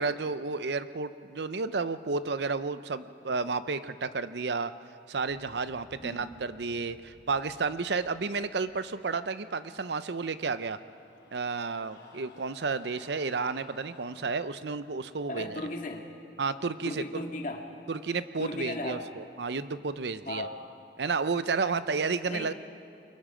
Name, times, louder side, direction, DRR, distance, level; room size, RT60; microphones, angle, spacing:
voice 1, 0.0-4.7 5.1-10.8 11.3-15.6 16.4-17.0 17.9-20.5 21.0-22.5, right 4 dB, 70° right, 13 dB, 0.6 m, -31 dB
sound 1, 5.2-9.1, equal, 15° right, 7.0 m, -59 dB
brul revers reverb, 10.3-14.5, left 2 dB, 90° left, 4.1 m, -56 dB
voice 2, 15.3-16.1 16.8-17.6 18.4-19.1 20.3-20.6 22.3-22.5, left 2 dB, 45° left, 2 dB, 2.0 m, -36 dB
29.0 x 22.5 x 5.0 m, 2.5 s
head